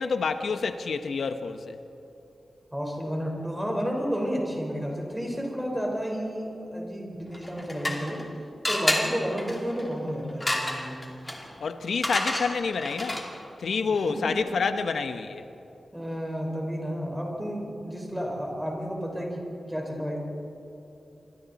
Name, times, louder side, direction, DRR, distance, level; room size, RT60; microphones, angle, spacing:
voice 1, 0.0-1.8 11.6-13.2 13.6-15.4, left 5 dB, 85° left, 8 dB, 0.9 m, -28 dB
voice 2, 2.7-8.2 8.7-11.0 13.9-14.4 15.9-20.2, equal, 5° right, 0 dB, 4.3 m, -31 dB
sound 1, 7.3-8.3 8.6-13.5, left 1 dB, 15° left, 2.5 m, -30 dB
27.5 x 25.0 x 4.2 m, 2.9 s
wide cardioid pair, 150°, 0 cm